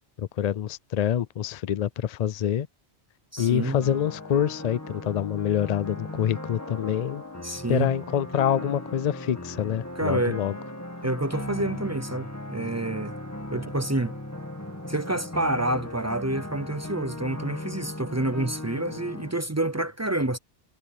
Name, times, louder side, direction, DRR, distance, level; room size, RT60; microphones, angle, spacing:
voice 1, 0.2-2.7 3.4-10.5, left 9 dB, 65° left, 0.4 m, -26 dB
voice 2, 3.3-3.8 7.4-7.9 10.0-10.4 11.0-13.1 13.5-14.1 14.9-20.4, right 2 dB, 25° right, 0.4 m, -28 dB
sound 1, 3.4-19.3, left 1 dB, 15° left, 2.0 m, -38 dB
omnidirectional pair, 1.2 m